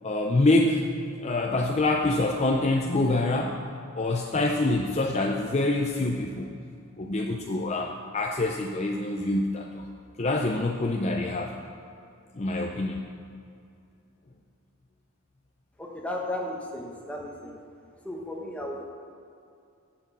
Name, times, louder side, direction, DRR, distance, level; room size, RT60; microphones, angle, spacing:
voice 1, 0.0-0.8 1.2-3.6 4.0-6.5 7.0-9.8 10.2-11.5 12.4-13.0, left 2 dB, 30° left, 1 dB, 0.5 m, -26 dB
voice 2, 15.8-17.6 18.0-18.8, left 1 dB, 5° left, -1 dB, 1.1 m, -34 dB
7.9 x 7.1 x 7.2 m, 2.5 s
head